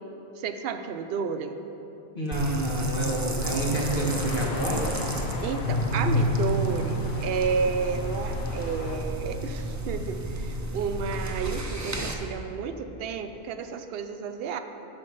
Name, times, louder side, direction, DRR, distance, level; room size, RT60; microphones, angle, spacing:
voice 1, 0.4-1.5 5.4-14.6, right 5 dB, 70° right, 8 dB, 0.8 m, -31 dB
voice 2, 2.1-4.9 8.5-8.6, right 1 dB, 55° left, -3 dB, 1.7 m, -28 dB
sound 1, 2.3-12.1, right 1 dB, 20° right, 0.5 m, -33 dB
sound 2, 3.4-9.0, left 2 dB, 70° left, 1.0 m, -31 dB
12.0 x 4.5 x 5.4 m, 3.0 s
omnidirectional pair, 1.1 m